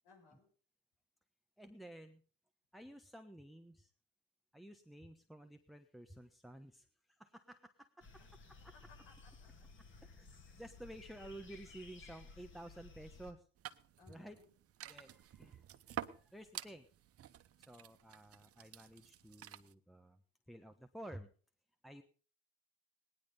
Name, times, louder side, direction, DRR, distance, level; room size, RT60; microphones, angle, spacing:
voice 1, 0.0-0.5 8.2-10.3 14.0-14.5, left 4 dB, 80° left, 0 dB, 7.9 m, -66 dB
voice 2, 1.6-2.2 2.7-3.9 4.5-8.1 10.0-13.5 14.1-14.4 14.8-16.9 17.7-20.2 20.5-21.3 21.8-22.0, right 1 dB, ahead, 8 dB, 1.0 m, -53 dB
sound 1, 8.0-13.3, left 4 dB, 40° left, 3.3 m, -57 dB
sound 2, 13.6-19.7, right 11 dB, 45° right, 1.1 m, -50 dB
18.5 x 10.5 x 5.3 m, 0.42 s
supercardioid pair, 85°, 31 cm